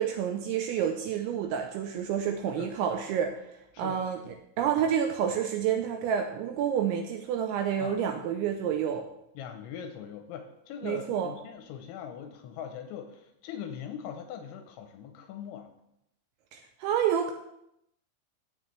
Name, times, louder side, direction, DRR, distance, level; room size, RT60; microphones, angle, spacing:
voice 1, 0.0-3.4 3.8-9.1 10.8-11.3 16.5-17.3, right 8 dB, 85° right, 4 dB, 2.7 m, -29 dB
voice 2, 9.4-15.7, left 8 dB, 85° left, 6 dB, 2.9 m, -41 dB
16.0 x 7.3 x 3.3 m, 0.80 s
omnidirectional pair, 5.9 m